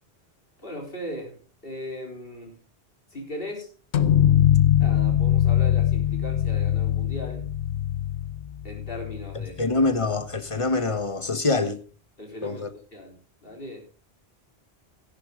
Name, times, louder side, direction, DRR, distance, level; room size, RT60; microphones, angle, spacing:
voice 1, 0.6-2.6 3.1-3.7 4.8-7.5 8.6-9.6 12.2-13.1 13.4-13.8, left 1 dB, 60° left, 4.0 m, -38 dB
sound 1, 3.9-9.5, left 11 dB, 90° left, 1.1 m, -22 dB
voice 2, 9.3-11.8 12.4-12.7, left 3 dB, 30° left, 1.3 m, -25 dB
14.0 x 11.0 x 3.8 m
omnidirectional pair, 1.1 m